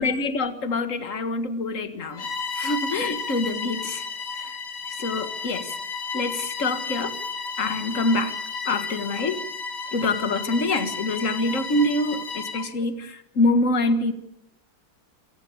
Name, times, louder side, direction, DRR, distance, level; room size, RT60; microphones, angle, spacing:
voice 1, 0.0-2.3 2.5-4.1 4.4-4.5 4.9-5.8 6.1-7.2 7.6-8.4 8.7-9.4 9.9-14.1, left 2 dB, 45° left, 10 dB, 2.0 m, -25 dB
Bowed string instrument, 2.1-12.7, left 4 dB, 60° left, 2.1 m, -33 dB
27.5 x 17.5 x 8.6 m, 0.78 s
omnidirectional pair, 2.1 m